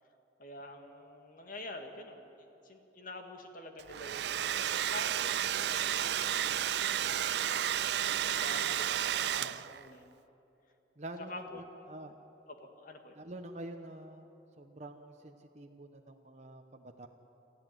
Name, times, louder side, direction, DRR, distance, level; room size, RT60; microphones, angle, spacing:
voice 1, 0.4-2.3 2.6-6.5 8.0-10.2 11.3-11.6 12.5-13.2, left 1 dB, 50° left, 5 dB, 2.1 m, -47 dB
Domestic sounds home sounds, 3.8-9.9, right 10 dB, 65° right, 0.4 m, -32 dB
voice 2, 9.2-9.6 11.0-12.2 13.1-14.3 14.6-17.1, right 1 dB, 40° right, 3 dB, 1.0 m, -47 dB
27.5 x 13.5 x 9.3 m, 2.9 s
head